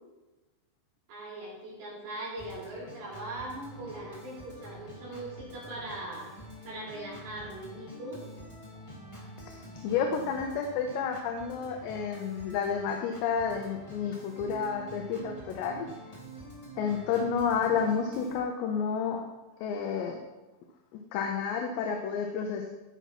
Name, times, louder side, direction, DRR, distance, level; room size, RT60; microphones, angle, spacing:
voice 1, 1.1-6.3 6.6-8.2, right 2 dB, 75° right, -6 dB, 5.4 m, -40 dB
Organ, 2.4-18.4, right 1 dB, 20° left, 0.9 m, -47 dB
voice 2, 9.8-15.9 16.8-19.2 19.6-20.2 21.1-22.7, left 6 dB, 80° left, 3 dB, 2.9 m, -30 dB
15.5 x 5.8 x 4.2 m, 1.1 s
omnidirectional pair, 5.1 m